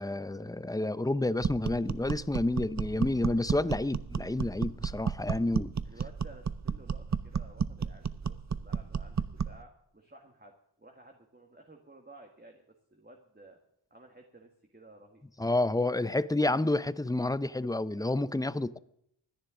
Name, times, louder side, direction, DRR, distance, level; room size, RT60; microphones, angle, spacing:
voice 1, 0.0-5.7 15.4-18.8, left 2 dB, 10° left, 0.5 m, -29 dB
sound 1, 1.4-9.6, right 6 dB, 35° right, 0.6 m, -33 dB
voice 2, 5.9-12.6 12.9-13.6 13.9-15.2, right 2 dB, 20° right, 1.7 m, -54 dB
25.0 x 10.5 x 3.7 m
wide cardioid pair, 95°, 47 cm